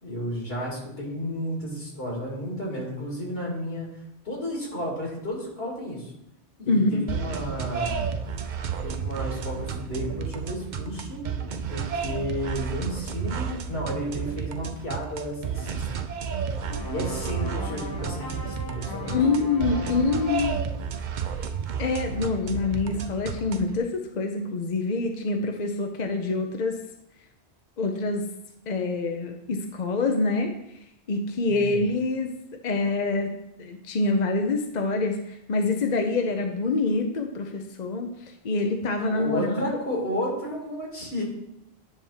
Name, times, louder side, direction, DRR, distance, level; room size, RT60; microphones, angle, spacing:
voice 1, 0.0-3.9 4.2-6.1 6.6-8.0 8.8-11.3 11.7-15.9 16.8-19.2 31.5-31.8 39.0-41.2, equal, 65° left, -2 dB, 2.6 m, -32 dB
voice 2, 6.7-7.0 19.1-20.6 21.8-26.8 27.8-28.3 28.7-30.5 31.1-32.3 32.6-33.3 33.6-39.7, left 3 dB, 45° left, 4 dB, 0.7 m, -26 dB
sound 1, 7.1-23.8, right 6 dB, 50° right, 0.6 m, -32 dB
sound 2, 16.6-20.6, left 2 dB, 20° left, 0.9 m, -38 dB
10.0 x 3.5 x 5.5 m, 0.81 s
omnidirectional pair, 1.1 m